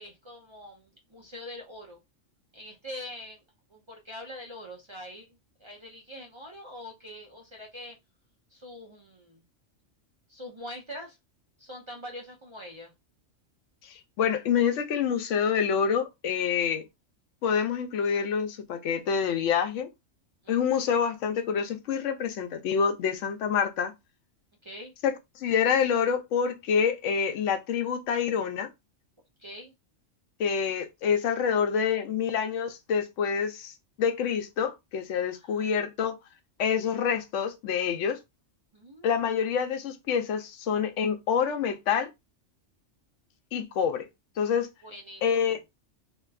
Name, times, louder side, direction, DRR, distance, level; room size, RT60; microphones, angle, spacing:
voice 1, 0.0-2.0 2.5-3.4 3.7-8.0 8.5-9.4 10.3-11.2 11.6-12.9 20.4-20.9 24.6-24.9 29.4-29.7 35.3-35.7 38.7-39.3 44.8-45.6, left 1 dB, 50° right, 0.3 m, -44 dB
voice 2, 13.8-16.8 17.4-19.9 20.5-23.9 25.0-28.7 30.4-36.2 36.6-38.2 39.0-42.1 43.5-44.1 44.4-44.7 45.2-45.6, left 7 dB, 80° left, 0.9 m, -27 dB
2.8 x 2.3 x 2.3 m
omnidirectional pair, 1.3 m